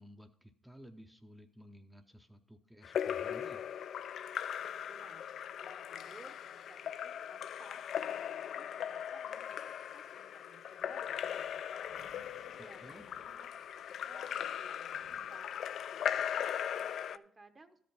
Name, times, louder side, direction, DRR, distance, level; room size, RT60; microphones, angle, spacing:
voice 1, 0.0-3.6 12.6-13.0, equal, ahead, 4 dB, 0.6 m, -55 dB
Splash splatter / Drip / Trickle dribble, 2.8-17.2, left 9 dB, 65° left, 0.3 m, -39 dB
voice 2, 4.9-5.3 5.6-12.3 12.6-13.6 14.0-15.6 15.9-17.8, right 2 dB, 25° right, 9 dB, 0.8 m, -59 dB
sound 1, 10.8-15.9, right 2 dB, 75° right, 2.0 m, -65 dB
12.5 x 5.2 x 5.3 m, 0.67 s
cardioid pair, 90°, 0 cm